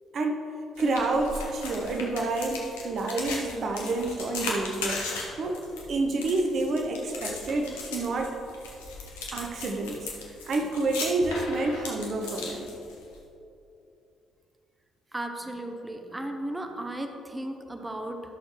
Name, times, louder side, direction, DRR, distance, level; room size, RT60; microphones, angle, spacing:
voice 1, 0.1-0.4 0.8-5.1 5.4-8.4 9.3-10.1 10.4-12.7, right 2 dB, 50° right, 3 dB, 0.8 m, -29 dB
sound 1, 0.8-13.2, left 3 dB, 75° left, 1.0 m, -37 dB
voice 2, 15.1-18.2, right 1 dB, 15° right, 5 dB, 0.8 m, -35 dB
13.0 x 6.4 x 3.1 m, 2.8 s
figure-of-eight pair, 45°, 0 cm